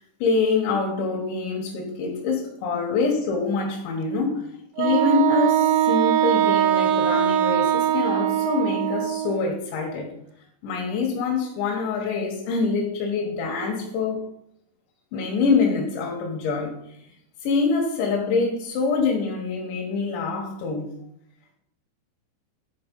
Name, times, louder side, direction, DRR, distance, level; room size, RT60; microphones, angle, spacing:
voice 1, 0.0-4.5 4.8-10.1 10.6-14.2 15.1-16.8 17.4-20.9, left 4 dB, 85° left, -1 dB, 3.7 m, -25 dB
Wind instrument woodwind instrument, 4.8-9.4, right 11 dB, 80° right, 2.2 m, -21 dB
10.5 x 4.5 x 5.4 m, 0.74 s
omnidirectional pair, 5.1 m